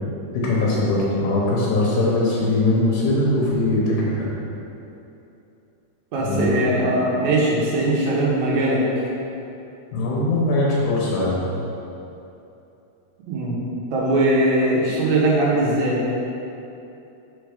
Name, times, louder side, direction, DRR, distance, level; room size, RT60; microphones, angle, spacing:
voice 1, 0.3-4.3 6.2-6.6 9.9-11.4, left 2 dB, 85° left, -5 dB, 2.4 m, -21 dB
voice 2, 6.1-9.0 13.3-13.6 13.9-16.0, right 1 dB, 70° right, -5 dB, 2.2 m, -20 dB
4.8 x 4.5 x 5.0 m, 2.8 s
omnidirectional pair, 3.5 m